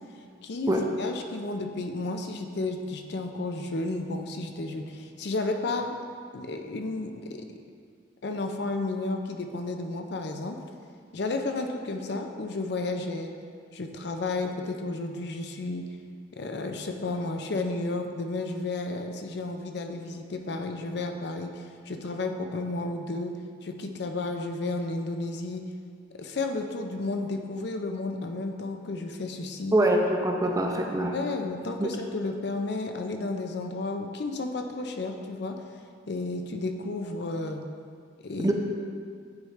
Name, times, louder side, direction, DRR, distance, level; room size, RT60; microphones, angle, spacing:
voice 1, 0.4-6.0 6.3-7.4 8.2-10.6 11.1-13.3 13.7-15.9 16.3-25.6 26.2-29.8 31.1-35.6 36.1-37.6 38.2-38.5, left 2 dB, 60° left, 4 dB, 0.5 m, -32 dB
voice 2, 29.7-31.2 31.8-31.9 38.4-38.5, right 1 dB, 20° right, 1 dB, 0.5 m, -24 dB
9.5 x 3.2 x 4.9 m, 2.2 s
head